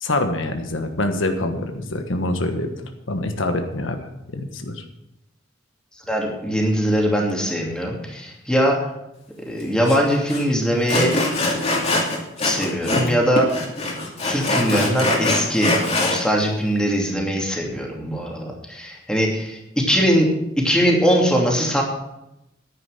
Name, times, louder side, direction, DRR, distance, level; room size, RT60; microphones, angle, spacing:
voice 1, 0.0-2.7 3.1-4.8, left 2 dB, 85° left, 6 dB, 1.4 m, -25 dB
voice 2, 6.1-8.8 9.5-11.2 11.5-11.6 12.4-13.5 14.3-20.3 20.6-21.8, equal, 5° left, -1 dB, 2.7 m, -21 dB
Sawing, 9.9-10.0 10.3-10.4 10.9-13.1 13.4-16.2, left 2 dB, 35° left, 2.6 m, -22 dB
10.5 x 9.9 x 6.6 m, 0.88 s
head